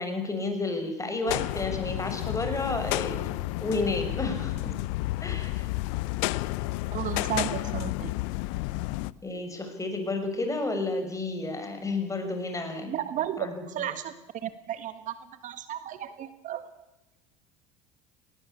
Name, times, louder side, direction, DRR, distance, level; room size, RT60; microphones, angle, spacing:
voice 1, 0.0-3.3 3.6-4.7 5.2-5.6 9.2-13.0 13.4-13.9, left 2 dB, 20° left, 6 dB, 6.6 m, -31 dB
sound 1, 1.3-9.1, left 19 dB, 70° left, 0.7 m, -31 dB
voice 2, 6.9-8.1 12.9-14.1 14.4-15.1 15.4-16.7, right 11 dB, 50° right, 11 dB, 1.6 m, -33 dB
19.5 x 19.0 x 8.6 m, 0.94 s
hypercardioid pair, 75°, 17 cm